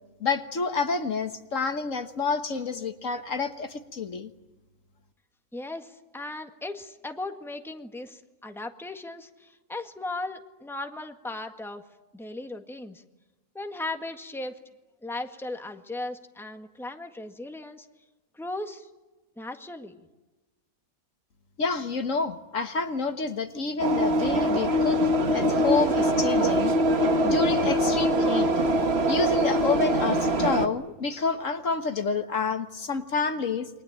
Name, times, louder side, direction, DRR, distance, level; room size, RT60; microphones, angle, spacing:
voice 1, 0.2-4.3 21.6-25.0 25.3-26.7 27.2-28.5 29.1-33.7, left 4 dB, 65° left, 8 dB, 1.7 m, -28 dB
voice 2, 5.5-11.8 12.1-13.0 13.5-14.6 15.0-17.9 18.3-18.9 19.4-20.0, left 2 dB, ahead, 6 dB, 1.7 m, -37 dB
sound 1, 23.8-30.7, equal, 50° right, 1.7 m, -23 dB
28.5 x 23.0 x 8.7 m, 1.1 s
omnidirectional pair, 1.5 m